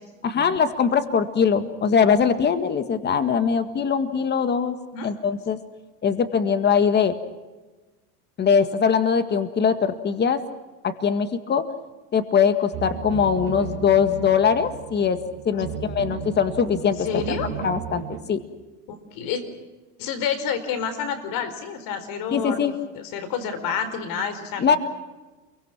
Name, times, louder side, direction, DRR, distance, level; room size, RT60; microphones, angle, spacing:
voice 1, 0.2-4.8 5.0-5.6 6.0-7.1 8.4-10.4 10.8-11.7 12.1-15.2 15.5-17.2 17.6-18.0 18.3-18.4 22.3-22.7 24.6-24.8, left 6 dB, 25° left, 10 dB, 1.9 m, -21 dB
sound 1, 12.7-18.2, right 10 dB, 65° right, 4.4 m, -34 dB
voice 2, 17.0-17.5 19.1-19.4 20.0-22.6 22.9-24.8, left 7 dB, 60° left, 11 dB, 4.6 m, -29 dB
28.5 x 23.5 x 6.1 m, 1.2 s
supercardioid pair, 120°, 39 cm